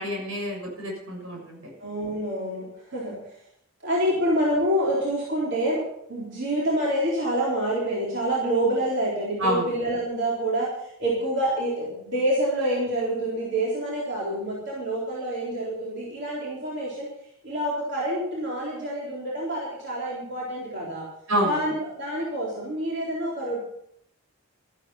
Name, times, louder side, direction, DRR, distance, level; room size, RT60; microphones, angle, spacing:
voice 1, 0.0-1.6 9.4-9.6 21.3-21.6, equal, 80° right, 0 dB, 6.4 m, -27 dB
voice 2, 1.8-3.2 3.8-5.8 6.1-17.1 17.4-21.1 21.4-23.6, right 1 dB, 55° right, -5 dB, 3.9 m, -27 dB
13.5 x 12.5 x 5.7 m, 0.73 s
head